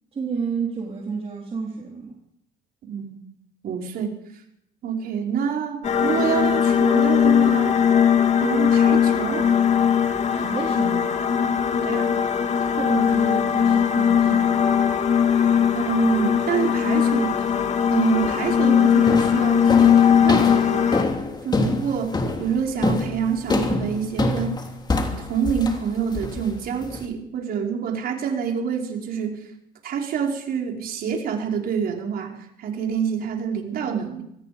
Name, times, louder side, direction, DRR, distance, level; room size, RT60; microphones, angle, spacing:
voice 1, 0.1-2.2 10.3-11.2 12.6-14.7, right 5 dB, 35° right, -1 dB, 3.8 m, -31 dB
voice 2, 2.8-3.2 3.6-4.2 4.8-7.8 8.4-9.5 11.8-12.2 15.7-17.6 17.9-21.0 21.4-24.6 25.2-29.5 29.8-34.2, right 7 dB, 60° right, 1 dB, 5.3 m, -27 dB
sound 1, 5.8-21.0, left 8 dB, 40° left, 2.1 m, -19 dB
sound 2, 18.2-18.6 19.1-27.0, left 2 dB, 25° left, 3.2 m, -26 dB
25.5 x 19.5 x 5.3 m, 0.76 s
cardioid pair, 110°, 17 cm